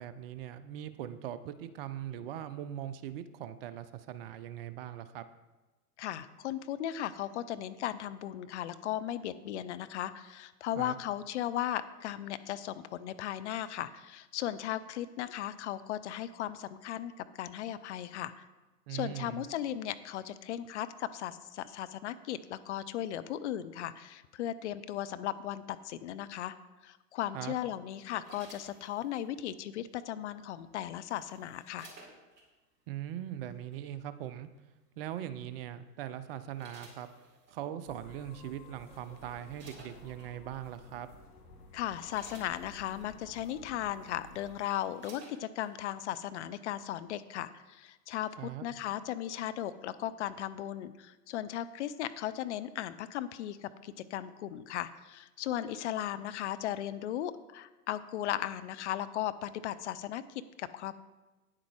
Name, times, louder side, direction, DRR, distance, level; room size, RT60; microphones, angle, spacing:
voice 1, 0.0-5.2 10.8-11.0 18.9-19.4 27.3-27.6 32.9-34.5 35.0-37.1 37.5-41.1 48.4-48.6, right 11 dB, 40° right, 12 dB, 0.6 m, -40 dB
voice 2, 6.0-18.4 18.9-26.5 26.8-31.9 41.7-61.0, left 12 dB, 45° left, 13 dB, 0.6 m, -37 dB
sound 1, 27.9-29.3 30.6-32.5 33.5-33.7 35.4-35.7 36.2-37.6 38.4-38.5 38.8-40.3 41.0-41.2 41.6-43.1 43.8-43.9 44.2-45.7 46.1-46.2, right 2 dB, 20° right, 3.9 m, -56 dB
sound 2, 37.9-44.6, left 2 dB, 70° left, 2.0 m, -54 dB
9.8 x 7.5 x 4.7 m, 1.1 s
hypercardioid pair, 110°, 47 cm